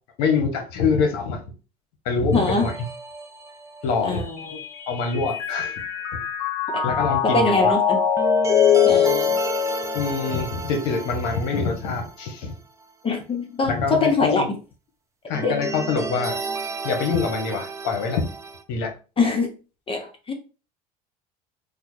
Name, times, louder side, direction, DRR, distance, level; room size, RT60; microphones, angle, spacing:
voice 1, 0.2-1.4 2.0-2.7 3.8-4.2 4.9-5.8 6.8-7.7 9.9-12.6 13.6-14.5 15.3-16.4 16.8-18.3 18.7-18.9, left 5 dB, 75° left, 4 dB, 1.0 m, -25 dB
voice 2, 2.3-2.7 4.0-4.6 6.7-6.8 7.2-8.0 8.8-9.4 13.0-14.4 15.4-15.6 19.2-19.5 19.9-20.3, left 3 dB, 25° left, 4 dB, 0.7 m, -23 dB
sound 1, 2.3-4.2 8.2-12.5 12.8-12.9 15.3-18.6, right 4 dB, 15° right, 0.4 m, -33 dB
Mallet percussion, 4.1-10.5, left 8 dB, 50° left, 1.1 m, -22 dB
3.5 x 2.2 x 3.1 m, 0.34 s
supercardioid pair, 95°, 20 cm